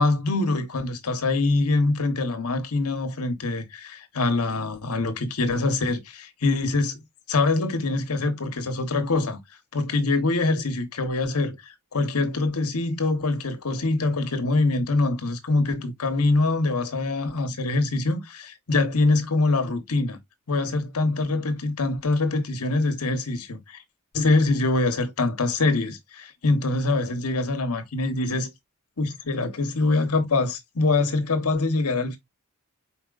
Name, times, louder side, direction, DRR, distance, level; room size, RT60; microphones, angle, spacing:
voice 1, 0.0-7.0 7.3-9.4 9.7-11.6 11.9-20.2 20.5-23.8 24.1-28.5 29.0-32.2, left 2 dB, 80° left, 1.0 m, -24 dB
4.9 x 4.3 x 2.4 m
head